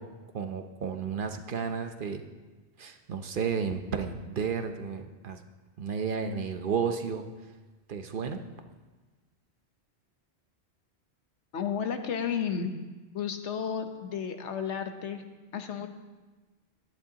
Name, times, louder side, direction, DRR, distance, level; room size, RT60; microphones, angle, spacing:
voice 1, 0.3-2.2 2.8-5.4 5.8-7.3 7.9-8.4, right 6 dB, 55° right, 7 dB, 0.9 m, -32 dB
voice 2, 11.5-12.7 13.1-15.3 15.5-15.9, left 7 dB, 85° left, 7 dB, 1.2 m, -32 dB
16.5 x 11.0 x 2.9 m, 1.3 s
omnidirectional pair, 1.1 m